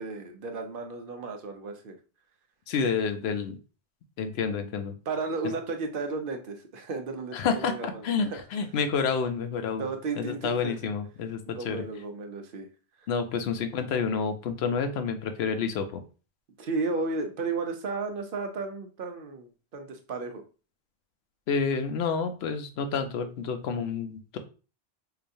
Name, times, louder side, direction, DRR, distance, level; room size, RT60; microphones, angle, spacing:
voice 1, 0.0-2.0 5.1-8.4 9.8-10.7 11.5-12.7 13.0-13.1 16.6-20.4, right 3 dB, 60° right, 5 dB, 0.8 m, -34 dB
voice 2, 2.7-3.6 4.2-4.9 7.3-9.9 10.2-11.8 13.1-16.0 21.5-24.4, left 5 dB, 80° left, 8 dB, 0.9 m, -29 dB
4.7 x 2.4 x 2.6 m, 0.35 s
omnidirectional pair, 1.1 m